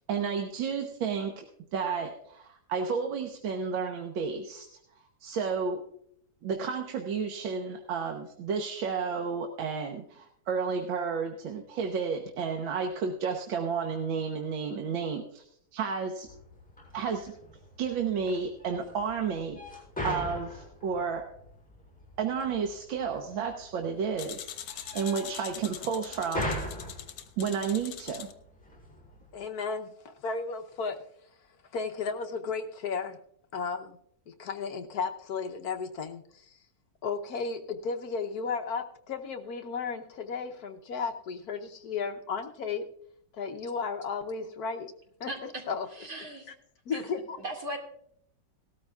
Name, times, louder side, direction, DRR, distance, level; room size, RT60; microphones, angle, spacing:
voice 1, 0.1-1.5 1.7-4.7 5.2-5.8 6.4-15.5 15.7-16.3 16.9-17.3 17.8-21.3 22.2-26.6 27.4-28.3, right 6 dB, 85° right, 3 dB, 1.8 m, -32 dB
sound 1, 16.3-29.4, left 1 dB, 5° left, 5.9 m, -42 dB
sound 2, 24.2-28.3, left 10 dB, 80° left, 1.6 m, -42 dB
voice 2, 29.3-31.0 31.7-33.2 33.5-34.0 34.3-36.6 37.0-42.8 43.3-44.9 45.2-45.3 45.7-45.9 46.5-46.6 46.9-47.4, left 5 dB, 60° left, 5 dB, 1.2 m, -34 dB
voice 3, 45.3-45.6 45.9-46.5 46.9-47.0 47.4-47.8, right 1 dB, 50° right, 0 dB, 3.0 m, -38 dB
18.5 x 13.5 x 2.3 m, 0.69 s
omnidirectional pair, 2.1 m